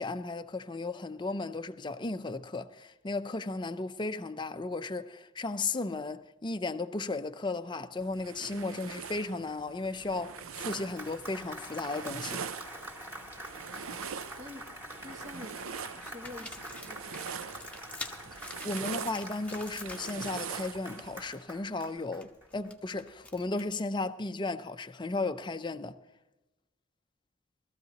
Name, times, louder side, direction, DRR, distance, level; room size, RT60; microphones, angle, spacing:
voice 1, 0.0-12.5 18.6-26.0, left 3 dB, 25° left, 0.5 m, -35 dB
sound 1, 8.0-21.3, right 7 dB, 80° right, 0.5 m, -43 dB
Applause, 10.1-22.7, equal, 10° right, 2.5 m, -46 dB
voice 2, 13.8-14.7 15.0-17.8, left 1 dB, 40° right, 1.6 m, -49 dB
sound 2, 14.2-14.3 14.7-15.4 16.0-20.7 20.9-21.2 21.5-23.8, left 3 dB, 5° left, 1.0 m, -47 dB
20.5 x 14.0 x 2.9 m
head